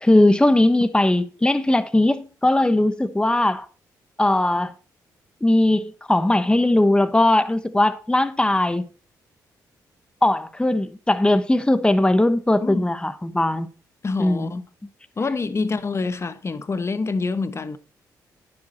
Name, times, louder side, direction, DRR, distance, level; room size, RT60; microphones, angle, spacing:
voice 1, 0.0-3.6 4.2-4.7 5.4-8.9 10.2-13.7 14.2-14.5, left 1 dB, 10° left, 1.1 m, -19 dB
voice 2, 14.0-14.7 15.2-17.8, left 4 dB, 35° left, 1.0 m, -26 dB
10.5 x 7.8 x 4.3 m
supercardioid pair, 60°, 8 cm